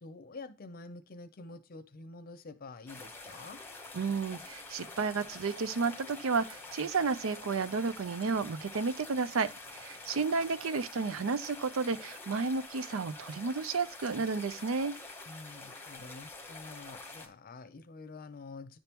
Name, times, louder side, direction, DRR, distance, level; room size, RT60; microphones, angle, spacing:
voice 1, 0.0-3.6 15.3-18.8, left 3 dB, 45° left, 0.6 m, -47 dB
sound 1, 2.9-17.3, left 3 dB, 10° left, 0.9 m, -47 dB
voice 2, 3.9-14.9, right 4 dB, 80° right, 0.5 m, -32 dB
10.0 x 3.5 x 2.9 m
head